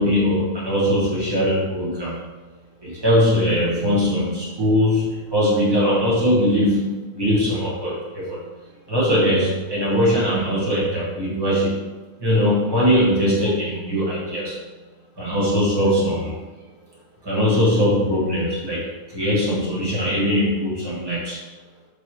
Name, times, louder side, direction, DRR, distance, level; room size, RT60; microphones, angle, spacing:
voice 1, 0.0-2.3 2.8-8.5 8.9-14.6 15.2-16.4 17.2-21.4, equal, 15° right, -7 dB, 1.0 m, -21 dB
5.0 x 2.8 x 2.8 m, 1.2 s
omnidirectional pair, 1.7 m